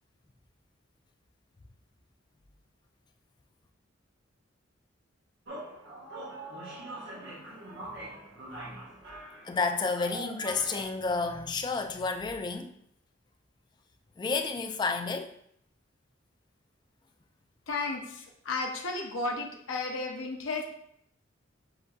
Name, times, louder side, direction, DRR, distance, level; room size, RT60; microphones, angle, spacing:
sound 1, 5.5-10.8, right 2 dB, 60° right, 1.2 m, -43 dB
voice 1, 8.5-8.8 9.4-12.7 14.2-15.3, left 4 dB, 20° left, 0.3 m, -31 dB
voice 2, 17.7-20.6, left 3 dB, 80° left, 0.7 m, -33 dB
7.7 x 2.7 x 2.3 m
head